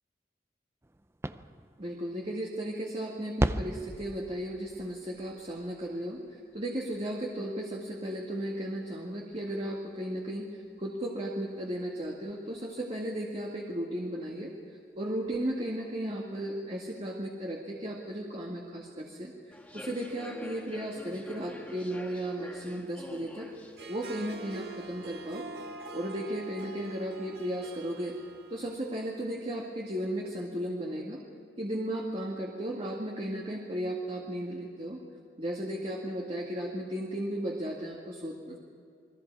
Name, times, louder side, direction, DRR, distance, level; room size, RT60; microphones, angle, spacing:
sound 1, 0.8-13.2 14.4-14.5 15.0-15.1 15.2-16.5, right 1 dB, 15° right, 0.5 m, -41 dB
voice 1, 1.8-14.5 15.0-19.3 19.7-23.5 23.9-25.5 25.9-28.2 28.5-31.2 31.6-35.0 35.4-38.6, right 1 dB, 35° right, -1 dB, 2.0 m, -35 dB
Human voice / Subway metro underground, 19.5-25.1, equal, 10° left, 1.9 m, -47 dB
Harp, 23.6-29.1, right 3 dB, 65° right, 1.9 m, -45 dB
29.0 x 21.5 x 4.8 m, 2.4 s
head